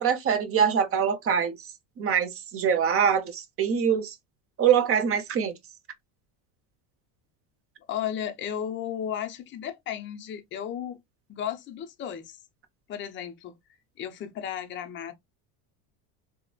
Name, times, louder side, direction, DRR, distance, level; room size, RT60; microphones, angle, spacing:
voice 1, 0.0-1.7 2.0-4.1 4.6-5.6, right 7 dB, 30° right, 0.6 m, -24 dB
voice 2, 7.9-11.0 11.3-12.4 12.9-13.5 14.0-15.1, left 9 dB, 30° left, 0.5 m, -34 dB
3.0 x 2.0 x 2.3 m
supercardioid pair, 120°, 44 cm